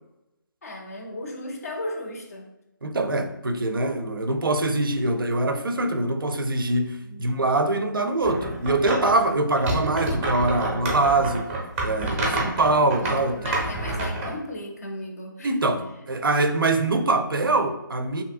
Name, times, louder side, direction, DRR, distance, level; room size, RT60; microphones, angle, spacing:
voice 1, 0.6-2.4 7.0-7.4 12.0-12.4 13.0-15.5, left 1 dB, 45° left, 2 dB, 0.5 m, -36 dB
voice 2, 2.8-11.5 11.8-13.4 15.4-18.2, right 2 dB, 80° right, 8 dB, 0.4 m, -23 dB
sound 1, 8.2-9.2 9.6-14.3, right 2 dB, 15° right, 0.4 m, -28 dB
2.8 x 2.6 x 2.5 m, 0.91 s
figure-of-eight pair, 145°, 11 cm